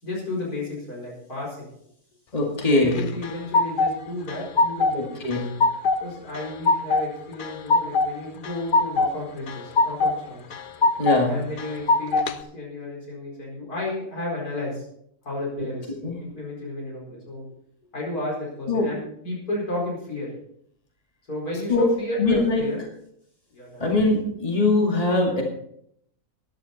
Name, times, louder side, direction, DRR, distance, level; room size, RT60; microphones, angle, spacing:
voice 1, 0.0-1.7 2.7-5.3 6.0-10.5 11.3-14.9 15.3-15.9 16.2-17.4 17.9-20.3 21.3-22.8 23.5-23.8, left 1 dB, 80° left, -3 dB, 5.2 m, -32 dB
voice 2, 2.3-3.0 4.9-5.4 11.0-11.3 15.6-15.7 16.0-16.2 18.7-18.9 21.7-21.8 22.2-22.6 23.8-25.4, left 2 dB, 25° left, 0 dB, 2.2 m, -22 dB
sound 1, 2.9-3.9 4.3-5.0 5.3-6.0 6.3-7.1 7.4-8.1 8.4-9.1 9.5-10.2 10.5-11.2 11.6-12.3, left 3 dB, 50° left, 0.6 m, -21 dB
13.5 x 11.0 x 4.1 m, 0.70 s
omnidirectional pair, 1.6 m